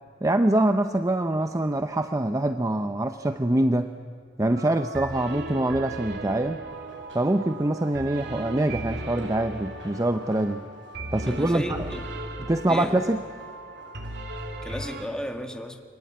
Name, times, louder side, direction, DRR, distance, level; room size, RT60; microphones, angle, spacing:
voice 1, 0.2-3.9 4.4-6.6 7.1-10.6 11.1-11.9 12.5-13.2, right 1 dB, 20° right, 8 dB, 0.7 m, -24 dB
sound 1, 4.5-15.1, right 2 dB, 65° right, 2.7 m, -37 dB
Run, 6.7-14.9, right 1 dB, 85° right, 6.8 m, -54 dB
voice 2, 11.3-12.0 12.7-13.0 14.6-15.8, equal, 5° left, 4 dB, 2.0 m, -34 dB
28.5 x 23.5 x 8.7 m, 2.2 s
head